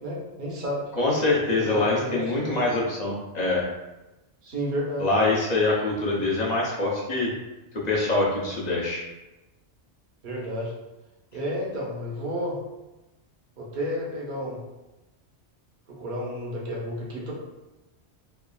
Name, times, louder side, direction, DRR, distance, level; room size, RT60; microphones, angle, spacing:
voice 1, 0.0-0.8 1.4-2.5 4.4-5.1 10.2-10.7 11.3-12.6 13.6-14.6 15.9-17.3, equal, 50° right, -4 dB, 0.8 m, -31 dB
voice 2, 1.0-3.7 5.0-7.3 7.8-9.0, left 2 dB, 45° left, -4 dB, 0.6 m, -24 dB
3.1 x 2.3 x 2.2 m, 1.0 s
omnidirectional pair, 1.2 m